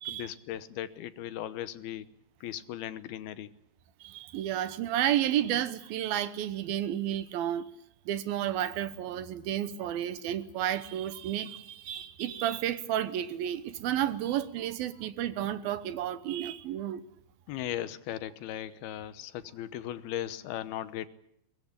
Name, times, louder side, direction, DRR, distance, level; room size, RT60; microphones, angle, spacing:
voice 1, 0.1-2.1 2.4-3.5 17.5-21.1, left 12 dB, 80° left, 2.9 m, -37 dB
voice 2, 4.0-7.7 8.1-17.0, right 11 dB, 75° right, 2.8 m, -31 dB
22.5 x 21.0 x 8.8 m
omnidirectional pair, 4.4 m